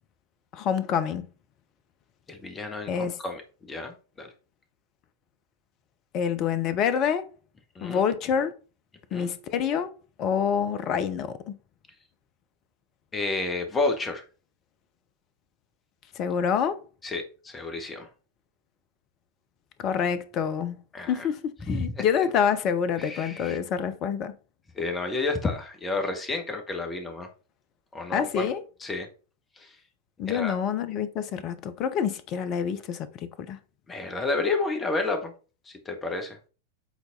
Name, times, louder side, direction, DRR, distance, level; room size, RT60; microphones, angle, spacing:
voice 1, 0.5-1.2 2.9-3.2 6.1-7.3 7.8-8.5 9.1-9.9 10.2-11.6 16.1-16.8 19.8-20.8 21.1-24.3 28.1-28.6 30.2-33.1 33.4-33.6, left 7 dB, 35° left, 0.8 m, -27 dB
voice 2, 2.3-2.9 3.2-4.3 7.7-8.0 9.1-9.3 13.1-14.2 17.0-18.1 20.9-21.3 21.7-22.0 23.0-23.6 24.7-27.3 27.9-28.5 28.8-29.1 29.6-29.7 30.3-30.6 33.9-35.3 35.7-36.4, left 3 dB, 15° left, 1.5 m, -30 dB
8.2 x 4.0 x 4.0 m
figure-of-eight pair, 90°, 0 cm